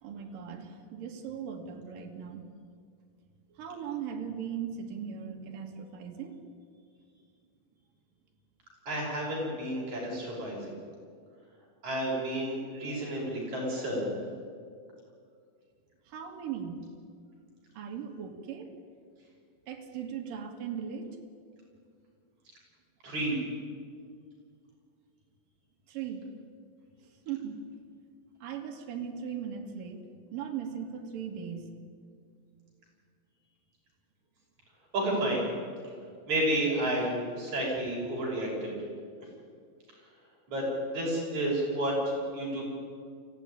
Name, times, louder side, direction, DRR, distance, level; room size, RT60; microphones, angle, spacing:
voice 1, 0.0-2.5 3.5-6.4 16.1-16.9 17.8-18.7 19.7-21.1 25.9-26.3 27.3-27.6 28.4-30.0 30.3-31.8, right 7 dB, 65° right, 2 dB, 3.6 m, -38 dB
voice 2, 8.9-10.7 11.8-14.1 23.0-23.4 34.9-35.4 36.3-38.7 40.5-42.6, right 1 dB, 50° right, -3 dB, 7.3 m, -31 dB
25.0 x 16.0 x 10.0 m, 2.2 s
omnidirectional pair, 4.3 m